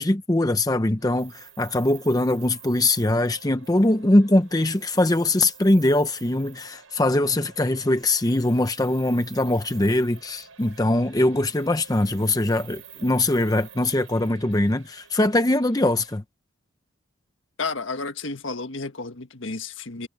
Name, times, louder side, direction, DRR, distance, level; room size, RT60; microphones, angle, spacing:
voice 1, 0.0-16.2, left 1 dB, 15° left, 0.7 m, -22 dB
sound 1, 1.0-16.2, right 4 dB, 75° right, 6.7 m, -52 dB
sound 2, 1.2-4.2 4.4-7.2 7.8-11.1 11.3-15.3, right 14 dB, 35° right, 5.8 m, -49 dB
voice 2, 17.6-20.1, left 3 dB, 65° left, 1.6 m, -32 dB
head